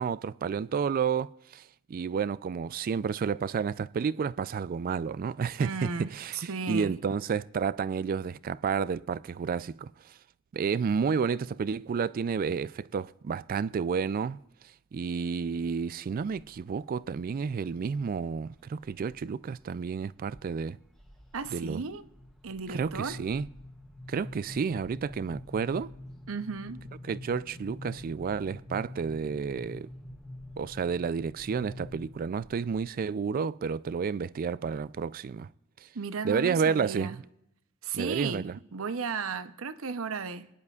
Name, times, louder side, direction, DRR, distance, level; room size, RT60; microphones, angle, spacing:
voice 1, 0.0-1.6 1.9-9.9 10.5-14.4 14.9-20.8 21.5-21.8 22.7-23.5 24.1-25.9 27.0-29.9 30.6-35.5 36.2-37.2 37.9-38.5, right 6 dB, 45° right, 0.3 m, -31 dB
voice 2, 5.6-7.0 21.3-22.0 22.4-23.2 26.3-26.9 35.9-37.2 37.8-40.5, right 5 dB, 80° right, 0.7 m, -35 dB
sound 1, 16.1-16.7 17.1-17.7 18.4-19.2 19.6-20.0 20.3-32.9, left 1 dB, ahead, 1.7 m, -46 dB
22.0 x 11.0 x 2.4 m
head